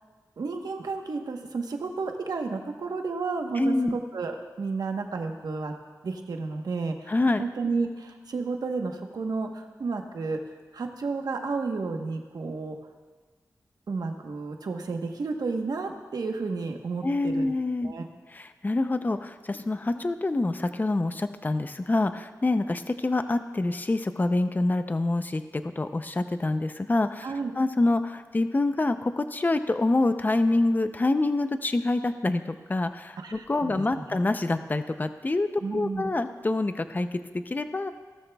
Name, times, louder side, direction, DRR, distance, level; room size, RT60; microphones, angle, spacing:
voice 1, 0.4-5.7 6.0-7.1 7.4-10.4 10.7-12.8 13.9-17.5 17.8-18.1 27.2-27.5 33.2-33.8 35.6-36.1, right 4 dB, 85° right, 4 dB, 1.1 m, -31 dB
voice 2, 3.6-4.0 7.1-7.4 17.0-17.9 18.3-25.4 25.8-27.3 27.6-37.9, left 2 dB, 30° left, 9 dB, 0.5 m, -26 dB
17.5 x 13.0 x 2.3 m, 1.5 s
wide cardioid pair, 85°, 6 cm